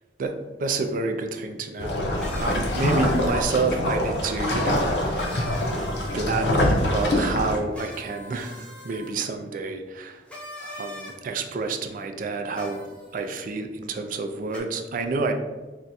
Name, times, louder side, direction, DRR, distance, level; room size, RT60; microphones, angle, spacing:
voice 1, 0.6-1.9 2.4-5.5 6.1-10.2 10.6-12.8 13.1-15.3, right 3 dB, 50° right, 6 dB, 0.3 m, -29 dB
sound 1, 1.8-7.6, left 1 dB, 70° left, 0.5 m, -24 dB
sound 2, 2.2-3.5 5.2-6.3 7.7-9.1 10.3-11.1 12.5-13.2 14.5-14.6, left 1 dB, 5° left, 0.5 m, -41 dB
2.5 x 2.3 x 4.0 m, 1.2 s
head